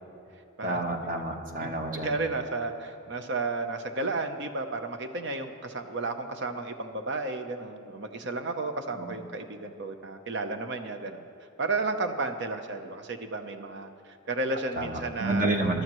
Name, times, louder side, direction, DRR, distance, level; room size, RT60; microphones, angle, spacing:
voice 1, 0.6-2.2 9.0-9.1 14.8-15.8, right 2 dB, 40° right, 3 dB, 1.2 m, -29 dB
voice 2, 1.6-11.2 11.6-15.6, right 3 dB, 60° right, 6 dB, 0.8 m, -33 dB
22.0 x 12.0 x 3.1 m, 2.7 s
head